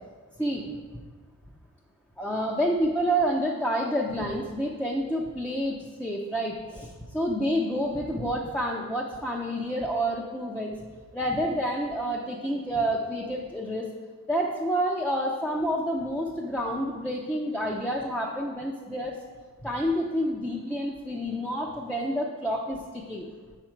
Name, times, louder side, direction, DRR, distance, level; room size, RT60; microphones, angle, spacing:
voice 1, 2.2-10.7 11.1-13.9 14.3-19.1 19.6-23.2, equal, 5° left, -2 dB, 0.5 m, -28 dB
5.9 x 4.7 x 4.4 m, 1.5 s
wide cardioid pair, 115°, 33 cm